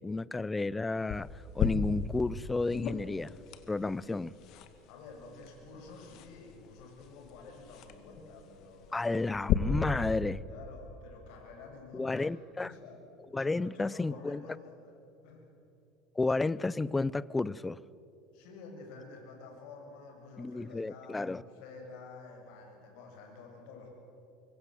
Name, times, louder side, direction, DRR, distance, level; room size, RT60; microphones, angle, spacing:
voice 1, 0.0-3.4 3.7-4.3 8.9-10.5 11.9-12.7 13.3-14.4 16.2-17.8 20.4-21.4, left 3 dB, 10° left, 0.5 m, -32 dB
sound 1, 1.1-9.5, left 9 dB, 55° left, 2.0 m, -37 dB
voice 2, 4.9-9.1 10.5-12.3 12.6-13.0 13.4-14.9 15.2-15.5 18.3-23.9, left 4 dB, 70° left, 7.1 m, -50 dB
25.5 x 23.5 x 7.9 m
supercardioid pair, 130°, 0 cm